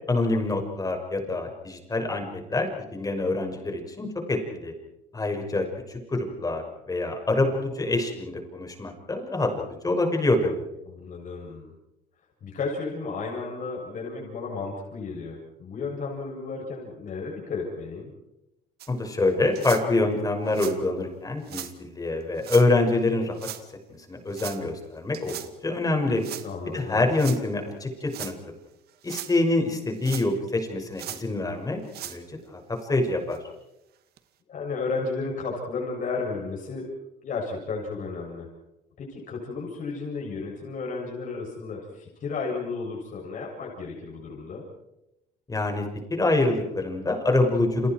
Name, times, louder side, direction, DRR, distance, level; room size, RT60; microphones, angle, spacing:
voice 1, 0.1-4.7 5.1-9.5 9.8-10.6 18.9-23.4 24.1-25.4 25.6-26.3 26.7-28.3 29.0-32.6 32.9-33.4 45.5-45.8 46.1-47.9, left 2 dB, 20° left, 3 dB, 6.2 m, -26 dB
voice 2, 10.9-11.7 12.4-18.1 26.4-27.1 34.5-36.9 37.2-38.5 39.0-44.7, left 4 dB, 50° left, -2 dB, 7.4 m, -33 dB
sound 1, 18.8-18.9 19.6-19.8 20.5-20.8 21.5-21.7 22.4-22.7 23.4-23.6 24.3-24.6 25.1-25.5 26.2-26.5 27.1-27.4 28.0-28.3 28.9-29.4 30.0-30.5 31.0-31.2 31.8-32.2 32.8-32.9 33.3-33.4 34.2-34.3, right 12 dB, 70° right, 2.1 m, -38 dB
30.0 x 27.5 x 4.7 m, 0.91 s
cardioid pair, 110°, 17 cm